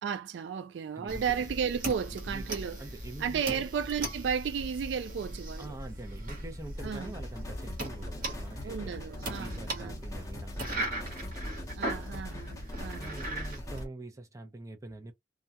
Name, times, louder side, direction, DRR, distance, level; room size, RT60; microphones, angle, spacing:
voice 1, 0.0-2.8 3.2-5.8 6.8-7.1 8.6-10.0 11.7-13.1, right 7 dB, 75° right, 0.3 m, -34 dB
voice 2, 1.0-1.4 2.1-2.5 2.8-3.7 5.6-8.9 9.4-11.3 13.0-15.1, right 2 dB, 20° right, 0.6 m, -45 dB
sound 1, 1.1-13.9, right 1 dB, 50° right, 1.1 m, -38 dB
sound 2, 6.8-13.8, left 2 dB, 20° left, 0.7 m, -45 dB
2.3 x 2.2 x 2.7 m
head